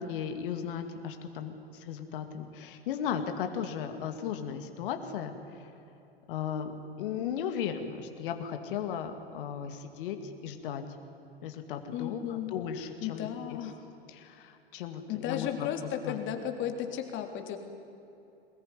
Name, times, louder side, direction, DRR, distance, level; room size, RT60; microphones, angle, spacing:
voice 1, 0.0-5.7 6.3-6.7 7.0-10.8 11.4-13.6 14.1-15.7 16.0-16.2, left 8 dB, 60° left, 7 dB, 2.2 m, -36 dB
voice 2, 11.9-12.5 13.0-13.8 15.1-17.6, left 10 dB, 40° left, 5 dB, 3.3 m, -34 dB
23.0 x 20.5 x 9.8 m, 2.9 s
figure-of-eight pair, 90°, 30 cm